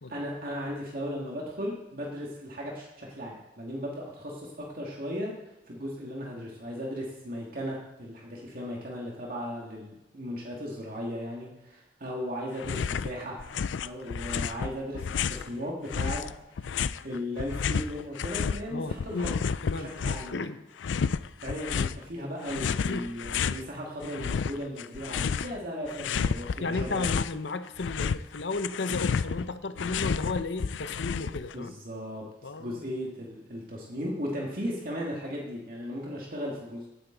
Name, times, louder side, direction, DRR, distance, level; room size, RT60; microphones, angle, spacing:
voice 1, 0.1-5.3 5.7-13.4 13.8-16.7 17.0-19.4 19.7-20.4 21.4-27.0 31.5-32.3 32.6-36.9, equal, 55° right, -2 dB, 2.3 m, -36 dB
sound 1, 12.6-13.1 13.4-15.5 15.9-18.6 18.9-20.4 20.8-22.0 22.4-23.6 24.0-25.6 25.9-27.4 27.7-31.5, left 6 dB, 85° left, 0.4 m, -31 dB
voice 2, 18.7-19.3 19.6-20.6 22.9-23.1 26.6-31.7 32.4-32.9, left 3 dB, 65° left, 10 dB, 0.8 m, -34 dB
16.5 x 9.3 x 4.0 m, 0.93 s
head